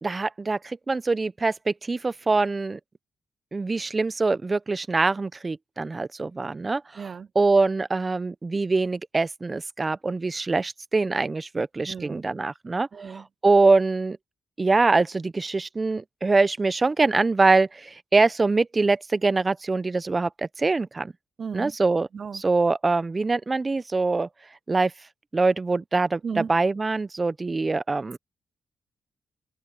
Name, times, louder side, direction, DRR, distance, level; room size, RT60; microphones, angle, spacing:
voice 1, 0.0-2.8 3.5-14.2 14.6-21.1 21.5-22.1 22.3-24.3 24.7-24.9 25.3-28.2, right 3 dB, 35° right, 0.9 m, -24 dB
voice 2, 7.0-7.3 11.9-12.2 12.9-13.2 21.4-21.7 22.1-22.4 26.2-26.5, right 6 dB, 55° right, 0.5 m, -34 dB
supercardioid pair, 55°, 0 cm